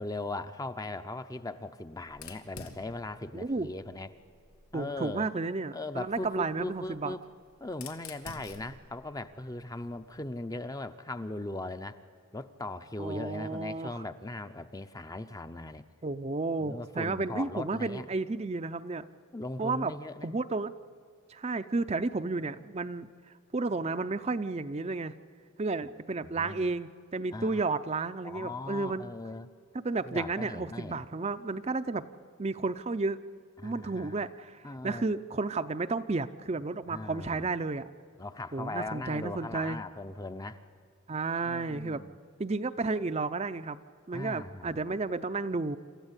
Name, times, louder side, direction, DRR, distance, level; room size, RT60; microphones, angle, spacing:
voice 1, 0.0-4.1 4.7-5.3 5.7-7.2 7.6-12.0 12.3-15.8 16.6-18.1 19.3-20.3 26.2-26.7 27.3-27.6 28.2-29.5 30.0-31.0 33.6-34.2 34.6-35.2 36.9-37.5 38.2-40.6 41.4-42.2 44.1-44.9, left 2 dB, 15° left, 10 dB, 0.6 m, -39 dB
Fire, 2.1-4.8 6.0-10.2, left 4 dB, 90° left, 2.1 m, -51 dB
voice 2, 3.3-3.7 4.7-7.2 13.0-14.0 16.0-19.1 19.6-19.9 20.2-20.7 21.3-23.1 23.5-25.1 25.6-29.1 29.7-32.0 32.4-33.2 33.6-37.9 38.5-39.8 41.1-42.0 42.4-43.8 44.1-45.8, right 3 dB, 30° right, 10 dB, 0.5 m, -32 dB
27.5 x 14.0 x 8.2 m, 2.2 s
head